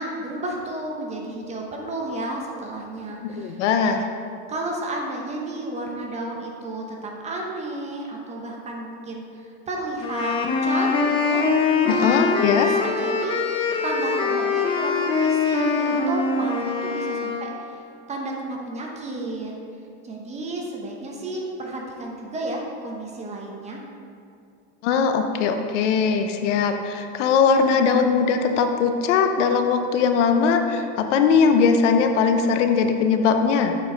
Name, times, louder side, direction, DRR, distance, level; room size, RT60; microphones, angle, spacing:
voice 1, 0.0-4.0 4.5-11.5 11.8-12.2 12.5-13.3 13.8-17.5 18.1-19.5 20.0-23.8, right 2 dB, 20° right, -1 dB, 0.9 m, -32 dB
voice 2, 3.2-4.0 11.9-12.7 24.8-33.8, left 5 dB, 80° left, 6 dB, 0.8 m, -20 dB
sound 1, 10.0-17.5, left 4 dB, 15° left, 0.4 m, -23 dB
7.8 x 4.6 x 5.0 m, 2.4 s
supercardioid pair, 145°, 36 cm